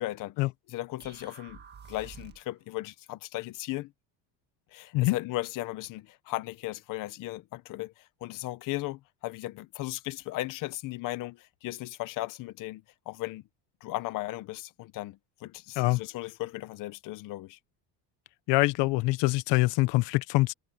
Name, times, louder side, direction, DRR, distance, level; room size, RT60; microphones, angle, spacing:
voice 1, 0.0-0.4 0.7-1.6 1.9-3.9 4.7-13.4 13.8-17.6, left 17 dB, 45° left, 0.7 m, -36 dB
sound 1, 1.0-2.6, right 7 dB, 25° right, 1.6 m, -49 dB
voice 2, 18.5-20.5, left 21 dB, 70° left, 1.0 m, -24 dB
cardioid pair, 175°, 44 cm